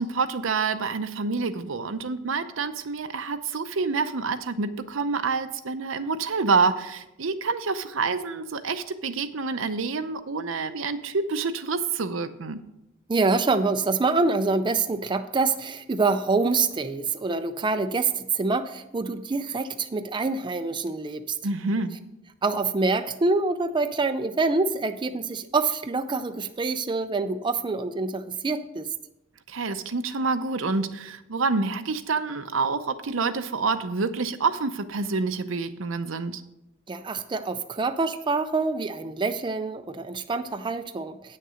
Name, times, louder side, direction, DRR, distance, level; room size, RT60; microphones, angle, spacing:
voice 1, 0.0-12.6 21.4-21.9 29.5-36.4, right 4 dB, 75° right, 10 dB, 0.7 m, -27 dB
voice 2, 13.1-21.4 22.4-28.9 36.9-41.4, right 3 dB, 25° right, 8 dB, 0.4 m, -26 dB
9.0 x 6.6 x 6.3 m, 0.87 s
head